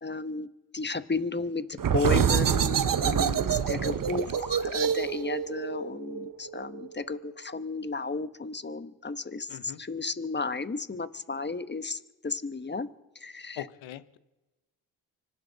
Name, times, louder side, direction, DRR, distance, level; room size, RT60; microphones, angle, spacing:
voice 1, 0.0-0.5 0.7-12.9 13.1-13.7, left 3 dB, 25° left, 12 dB, 1.2 m, -33 dB
sound 1, 1.8-7.2, right 8 dB, 45° right, 1.0 m, -27 dB
voice 2, 9.5-9.8 13.6-14.2, left 12 dB, 80° left, 14 dB, 1.0 m, -41 dB
25.0 x 12.5 x 4.0 m, 1.1 s
supercardioid pair, 50°, 46 cm